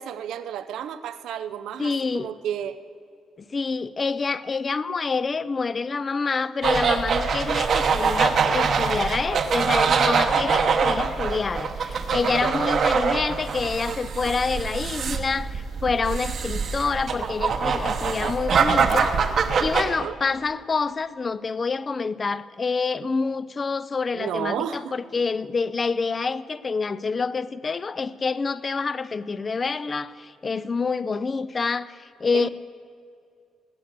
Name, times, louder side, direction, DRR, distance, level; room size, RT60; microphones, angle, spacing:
voice 1, 0.0-2.8 12.4-12.7 19.8-20.2 24.1-24.9 32.3-32.5, right 9 dB, 80° right, 12 dB, 0.6 m, -32 dB
voice 2, 1.8-2.3 3.5-19.2 19.6-32.5, left 4 dB, 30° left, 17 dB, 0.4 m, -27 dB
sound 1, 6.6-19.8, right 5 dB, 50° right, 1.0 m, -24 dB
19.5 x 8.5 x 6.6 m, 2.4 s
cardioid pair, 130°, 0 cm